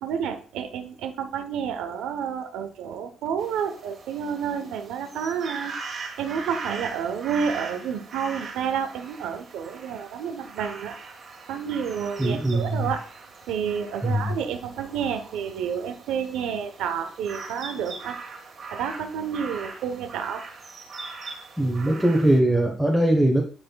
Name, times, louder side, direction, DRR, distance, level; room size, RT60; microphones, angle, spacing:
voice 1, 0.0-5.7 6.2-11.0 11.5-13.0 13.5-18.2 18.7-20.4, right 7 dB, 90° right, 7 dB, 0.9 m, -30 dB
sound 1, 3.4-22.4, right 4 dB, 50° right, 1.6 m, -40 dB
voice 2, 12.2-12.9 14.0-14.3 21.6-23.4, right 1 dB, ahead, 1 dB, 1.2 m, -21 dB
9.9 x 4.4 x 2.3 m, 0.40 s
cardioid pair, 90°, 0 cm